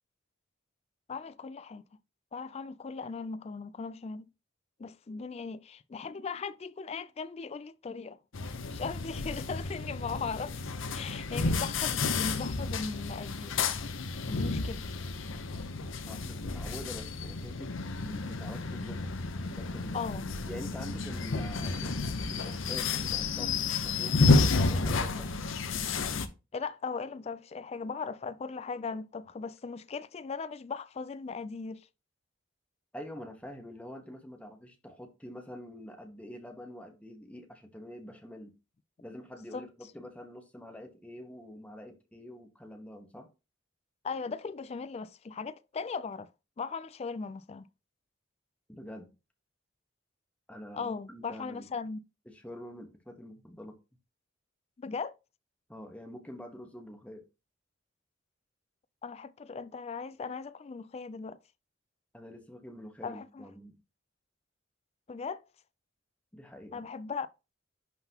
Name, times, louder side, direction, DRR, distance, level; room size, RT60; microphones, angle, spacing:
voice 1, 1.1-1.8 2.3-4.3 4.8-8.2 8.7-10.6 10.9-13.6 14.3-14.9 19.9-20.3 26.5-31.9 39.5-39.7 44.0-46.3 46.6-47.7 50.7-52.0 54.8-55.1 59.0-61.4 63.0-63.4 65.1-65.5 66.7-67.3, left 5 dB, 35° left, 0.3 m, -38 dB
sound 1, 8.3-26.3, left 3 dB, 85° left, 0.8 m, -31 dB
voice 2, 16.1-19.0 19.5-20.0 20.5-22.0 22.3-23.5 23.8-25.3 32.9-38.5 39.0-43.3 48.7-49.1 50.5-51.7 52.3-53.8 55.7-57.2 62.1-63.8 66.3-66.8, left 1 dB, 5° left, 1.1 m, -46 dB
11.0 x 3.9 x 2.9 m
head